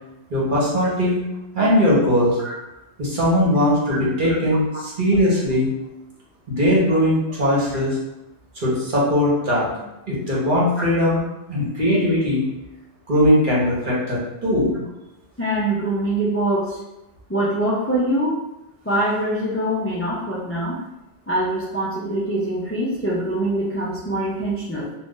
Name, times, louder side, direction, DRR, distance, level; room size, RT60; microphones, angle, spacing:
voice 1, 0.3-1.2 1.5-2.4 3.0-5.7 6.5-8.0 8.6-9.7 10.1-11.2 11.5-12.4 13.1-14.8, equal, 50° right, -6 dB, 1.1 m, -19 dB
voice 2, 15.4-16.8 17.3-18.3 18.8-20.8 21.3-24.9, right 1 dB, 20° left, -6 dB, 0.4 m, -23 dB
2.5 x 2.5 x 3.7 m, 0.94 s
omnidirectional pair, 1.2 m